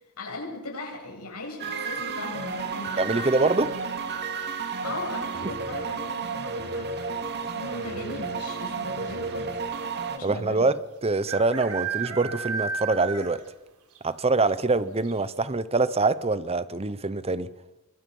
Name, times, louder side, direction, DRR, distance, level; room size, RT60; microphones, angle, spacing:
voice 1, 0.2-3.5 4.1-4.2 4.8-7.0 7.5-9.6 10.1-10.7, left 2 dB, 85° left, 7.8 m, -38 dB
sound 1, 1.6-10.2, right 4 dB, 50° right, 2.3 m, -32 dB
voice 2, 3.0-3.7 10.2-13.4 14.0-17.5, right 3 dB, 25° right, 0.9 m, -24 dB
sound 2, 3.7-4.2 6.0-6.4 6.7-6.8 7.0-7.5 8.3-8.4 8.6-8.7 10.2-10.3 11.3-13.6 13.9-14.0 14.5-14.6 15.0-15.1, right 6 dB, 85° right, 4.4 m, -33 dB
27.0 x 24.0 x 5.6 m
head